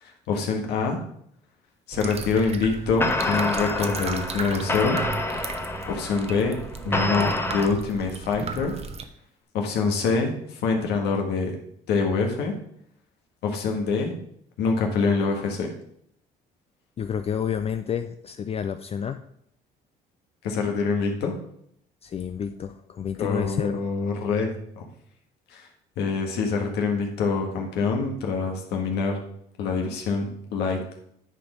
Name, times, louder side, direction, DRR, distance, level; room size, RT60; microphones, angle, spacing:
voice 1, 0.0-1.0 1.9-5.0 5.9-6.6 6.8-8.7 9.5-11.5 11.9-12.5 13.4-14.1 14.6-15.7 20.4-21.3 23.2-24.5 24.8-24.9 25.5-25.7 26.0-29.2 29.6-31.0, left 4 dB, 80° left, 2 dB, 1.6 m, -25 dB
sound 1, 1.9-9.0, right 5 dB, 40° right, 0.8 m, -35 dB
sound 2, 3.0-7.7, left 2 dB, 15° left, 0.9 m, -28 dB
voice 2, 17.0-19.2 22.0-23.8, left 7 dB, 35° left, 9 dB, 0.4 m, -29 dB
10.0 x 4.2 x 5.1 m, 0.70 s
cardioid pair, 110°, 17 cm